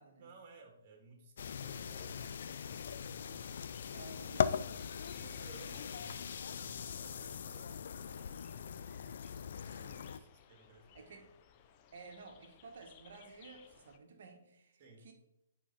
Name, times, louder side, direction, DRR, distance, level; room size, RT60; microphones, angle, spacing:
voice 1, 0.2-4.1 5.1-9.2 9.9-11.1 14.8-15.1, right 3 dB, 40° right, 2 dB, 2.6 m, -59 dB
sound 1, 1.4-10.2, left 7 dB, 60° left, 0.4 m, -40 dB
sound 2, 3.5-14.0, left 9 dB, 35° left, 0.8 m, -62 dB
voice 2, 3.8-4.9 5.2-5.9 8.2-8.3 9.6-10.2 10.9-11.3 11.9-15.1, right 3 dB, 55° right, 4 dB, 1.8 m, -54 dB
10.0 x 4.6 x 4.4 m, 0.84 s
figure-of-eight pair, 130°, 0 cm